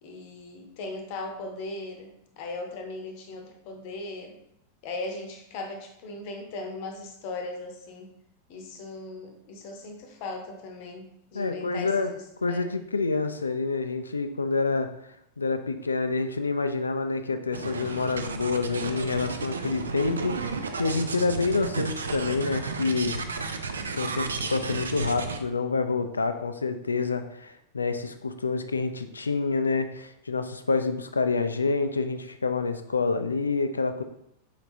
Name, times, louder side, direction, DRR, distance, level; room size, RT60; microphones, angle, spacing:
voice 1, 0.0-4.3 4.8-8.1 8.5-12.7, left 2 dB, 45° left, 3 dB, 0.8 m, -38 dB
voice 2, 11.3-12.1 12.4-14.9 15.4-23.2 23.9-34.0, left 4 dB, 75° left, 9 dB, 0.3 m, -27 dB
sound 1, 17.5-25.4, right 4 dB, 70° right, 0.3 m, -33 dB
4.8 x 3.4 x 2.7 m, 0.76 s
figure-of-eight pair, 90°, 0 cm